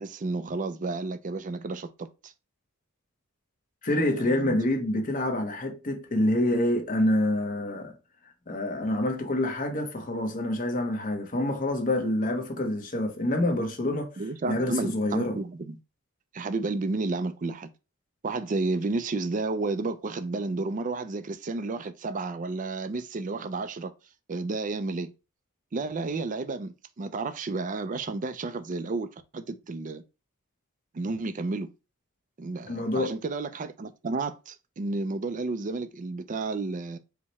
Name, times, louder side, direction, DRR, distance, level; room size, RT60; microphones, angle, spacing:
voice 1, 0.0-2.3 4.0-4.6 14.2-15.8 16.3-17.7 18.2-23.9 24.3-25.1 25.7-29.1 29.3-30.0 30.9-31.7 32.4-37.0, right 3 dB, 35° right, 0.4 m, -31 dB
voice 2, 3.8-7.9 8.5-14.1 14.5-15.4 32.7-33.2, left 1 dB, 40° left, 0.9 m, -27 dB
4.7 x 2.2 x 4.1 m
head